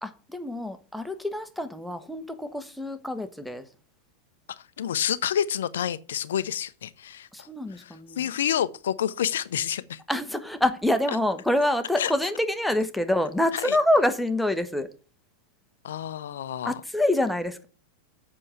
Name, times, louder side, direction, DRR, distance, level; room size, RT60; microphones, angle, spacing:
voice 1, 0.0-3.6 7.3-8.3 10.1-14.9 16.6-17.6, left 1 dB, ahead, 1.3 m, -26 dB
voice 2, 4.6-10.0 12.0-12.1 13.5-13.8 15.8-16.8, left 9 dB, 65° left, 0.6 m, -29 dB
7.7 x 6.2 x 7.8 m
figure-of-eight pair, 90°, 0 cm